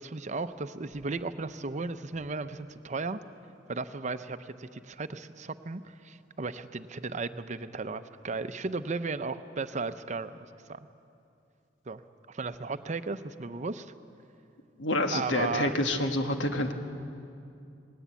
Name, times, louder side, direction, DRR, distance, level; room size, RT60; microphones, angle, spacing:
voice 1, 0.0-3.2 3.7-10.8 11.9-12.0 12.3-13.9 15.1-15.8, right 4 dB, 40° right, 10 dB, 0.7 m, -35 dB
voice 2, 14.8-16.7, left 1 dB, 90° left, 5 dB, 1.4 m, -28 dB
19.0 x 18.0 x 8.3 m, 2.6 s
head